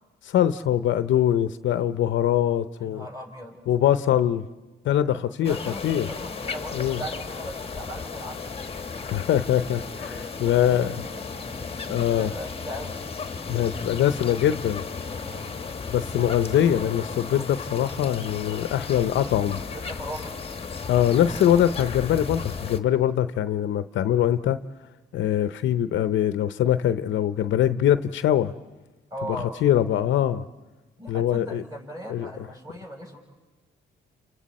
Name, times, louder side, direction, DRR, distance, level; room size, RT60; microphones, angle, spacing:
voice 1, 0.2-3.1 3.7-4.5 4.8-6.1 6.7-7.0 9.0-10.9 11.9-12.3 13.5-14.8 15.9-19.6 20.9-24.6 25.1-28.5 29.6-30.4 31.1-31.6 32.1-32.3, left 10 dB, 70° left, 12 dB, 0.7 m, -23 dB
voice 2, 2.8-3.6 5.2-8.6 9.9-13.0 15.2-15.6 19.6-20.3 29.1-29.5 31.0-33.2, equal, 15° right, 0 dB, 6.5 m, -39 dB
sound 1, 5.4-22.8, left 5 dB, 30° left, 1.1 m, -35 dB
30.0 x 29.0 x 4.2 m, 1.2 s
cardioid pair, 90°, 20 cm